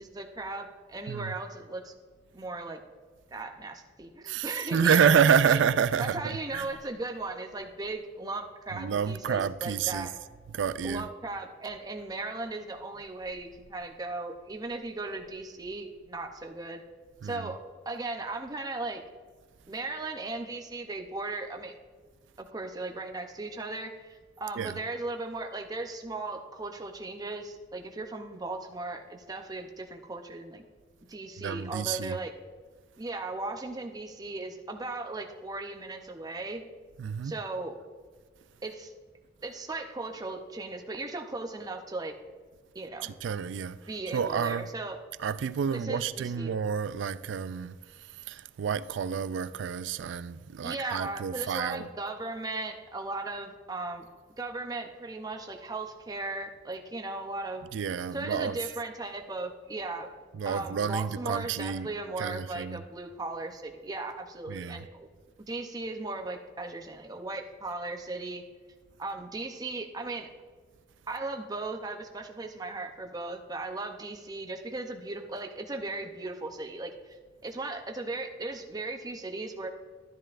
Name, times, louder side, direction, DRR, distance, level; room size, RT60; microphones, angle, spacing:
voice 1, 0.0-1.9 2.3-2.8 3.3-5.2 5.5-5.6 6.0-10.1 10.8-16.8 17.2-19.0 19.7-21.7 22.4-30.6 31.1-32.3 33.0-36.6 37.2-37.8 38.6-38.9 39.4-42.1 42.7-43.1 43.9-45.0 45.7-46.6 50.6-54.1 54.4-57.7 58.1-60.1 60.5-65.1 65.5-68.4 69.0-70.3 71.1-77.2 77.4-79.7, right 2 dB, 20° right, 0.6 m, -37 dB
voice 2, 4.3-6.7 8.7-10.1 10.5-11.1 17.2-17.5 24.6-24.8 31.4-32.2 37.0-37.3 43.0-43.8 44.1-44.7 45.2-51.9 57.7-58.6 60.3-61.9 62.2-62.8 64.5-64.8, right 7 dB, 70° right, 0.3 m, -29 dB
12.5 x 10.0 x 2.5 m
head